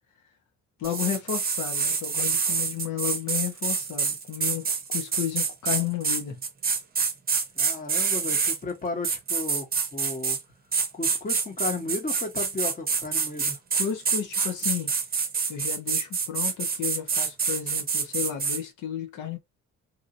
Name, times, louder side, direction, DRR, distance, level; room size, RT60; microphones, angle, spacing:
voice 1, 0.8-6.4 13.7-14.9 15.5-19.4, left 10 dB, 80° left, 0.9 m, -32 dB
sound 1, 0.8-8.6 9.0-10.4 10.7-18.6, right 5 dB, 30° right, 0.7 m, -27 dB
voice 2, 7.5-10.4 10.9-13.6, left 3 dB, 30° left, 1.1 m, -34 dB
2.9 x 2.6 x 2.6 m
cardioid pair, 90°, 30 cm